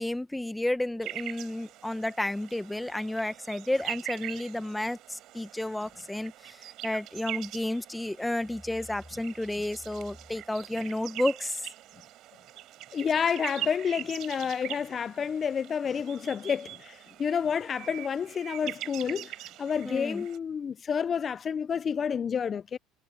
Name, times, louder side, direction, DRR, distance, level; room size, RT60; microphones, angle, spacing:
voice 1, 0.0-11.6 19.8-20.2, left 1 dB, 5° left, 1.1 m, -31 dB
sound 1, 1.0-20.4, right 15 dB, 60° right, 6.0 m, -42 dB
voice 2, 12.9-22.8, left 7 dB, 35° left, 0.3 m, -29 dB
supercardioid pair, 110°, 0 cm